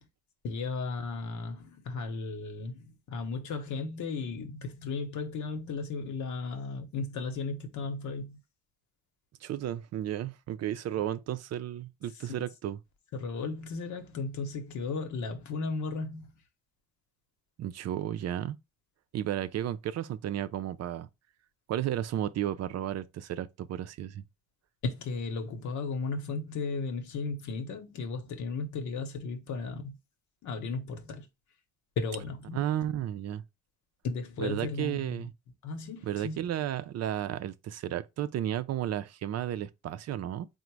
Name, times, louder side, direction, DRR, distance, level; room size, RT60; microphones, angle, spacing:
voice 1, 0.4-8.4 12.2-12.5 13.1-16.3 24.8-29.9 30.4-31.3 32.0-32.6 34.0-35.2 35.6-36.4, left 4 dB, 75° left, 0.9 m, -35 dB
voice 2, 9.4-12.8 17.6-18.6 19.1-21.1 21.7-24.2 32.5-33.4 34.4-35.3 36.0-40.5, right 11 dB, 55° right, 0.4 m, -33 dB
3.9 x 2.1 x 4.5 m
cardioid pair, 90°, 30 cm